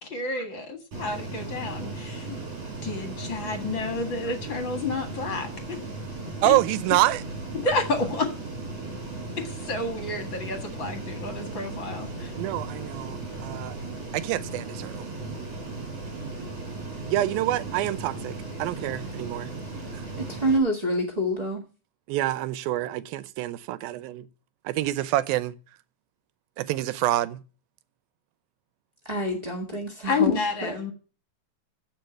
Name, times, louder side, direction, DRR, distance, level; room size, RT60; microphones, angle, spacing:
voice 1, 0.0-2.4 2.8-5.8 6.4-6.5 7.6-8.3 9.4-12.3 30.1-30.9, left 3 dB, 40° left, 2.0 m, -30 dB
Ocean, 0.9-20.6, right 3 dB, 45° right, 5.9 m, -36 dB
voice 2, 6.4-7.2 12.4-13.8 14.1-15.1 17.0-19.5 22.1-24.3 24.7-25.5 26.6-27.4, right 15 dB, 90° right, 2.5 m, -27 dB
voice 3, 20.2-21.6 29.0-30.8, right 1 dB, 30° right, 0.7 m, -27 dB
15.0 x 5.1 x 9.2 m
omnidirectional pair, 4.1 m